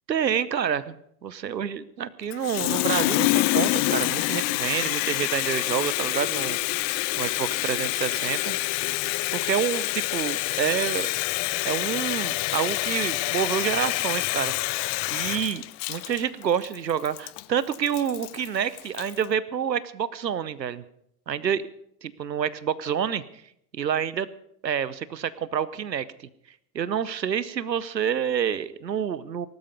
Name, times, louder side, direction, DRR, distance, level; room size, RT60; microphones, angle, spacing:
voice 1, 0.1-1.0 1.2-8.6 9.3-11.1 11.6-14.5 15.1-20.8 21.3-21.6 22.0-23.2 23.7-24.3 24.6-26.0 26.7-29.5, right 8 dB, 85° right, 18 dB, 1.0 m, -28 dB
Water tap faucet, 2.3-19.2, left 22 dB, 35° left, 0.5 m, -27 dB
18.5 x 12.0 x 5.2 m, 0.74 s
figure-of-eight pair, 85°, 49 cm